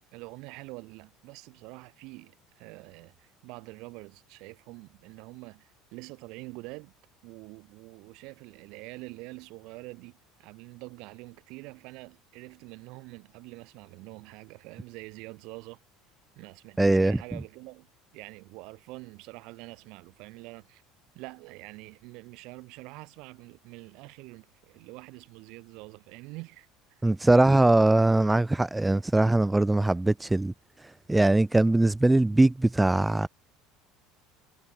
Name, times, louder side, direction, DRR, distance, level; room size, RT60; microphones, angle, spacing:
voice 1, 0.1-6.9 7.2-15.8 16.4-17.9 18.1-20.8 21.1-26.7 27.0-27.1, right 25 dB, 55° right, 2.0 m, -45 dB
voice 2, 16.8-17.2 27.0-30.5 31.1-33.3, right 2 dB, 10° right, 0.3 m, -21 dB
figure-of-eight pair, 65°, 0 cm